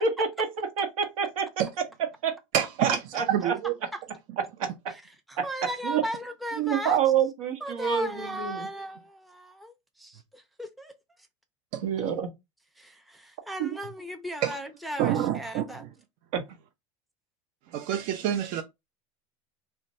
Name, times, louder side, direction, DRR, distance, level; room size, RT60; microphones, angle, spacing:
voice 1, 0.0-1.5 2.2-2.3 2.8-2.9 3.1-3.5 4.6-4.7 5.8-6.0 6.6-8.7 11.8-12.3 13.6-13.7 16.3-16.4, right 7 dB, 90° right, 0.9 m, -27 dB
voice 2, 2.5-3.7 11.7-11.8 14.4-14.6 15.0-15.9 17.7-18.6, right 10 dB, 55° right, 0.4 m, -27 dB
voice 3, 3.6-4.0 4.9-5.0 5.3-7.0 7.6-10.9 12.8-15.9, equal, ahead, 0.5 m, -37 dB
2.5 x 2.2 x 4.0 m
supercardioid pair, 120°, 17 cm